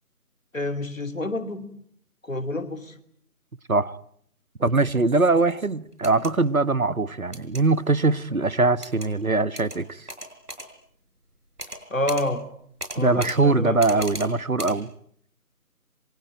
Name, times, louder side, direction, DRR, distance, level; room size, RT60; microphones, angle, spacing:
voice 1, 0.5-1.7 2.2-3.0 11.9-12.4 12.9-14.0, left 1 dB, 55° left, 3.0 m, -28 dB
voice 2, 4.6-10.0 13.0-14.9, right 3 dB, 65° right, 1.4 m, -22 dB
sound 1, 5.9-6.3 7.3-7.6 8.8-9.1 9.6-9.8 10.1-10.7 11.6-11.8 12.1-12.3 12.8-13.4 13.8-14.3 14.6-14.8, equal, 80° right, 5.9 m, -36 dB
27.5 x 24.5 x 8.9 m
figure-of-eight pair, 165°, 46 cm